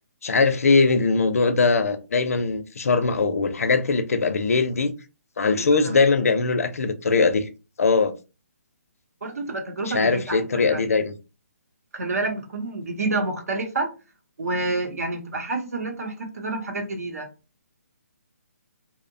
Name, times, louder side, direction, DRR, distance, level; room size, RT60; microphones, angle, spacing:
voice 1, 0.2-4.9 5.4-7.5 7.8-8.1 9.9-11.1, left 4 dB, 65° left, 0.5 m, -21 dB
voice 2, 5.6-6.0 9.2-10.4 10.7-10.8 11.9-13.9 14.4-17.3, right 2 dB, 75° right, 0.8 m, -28 dB
2.7 x 2.1 x 2.5 m
hypercardioid pair, 175°, 8 cm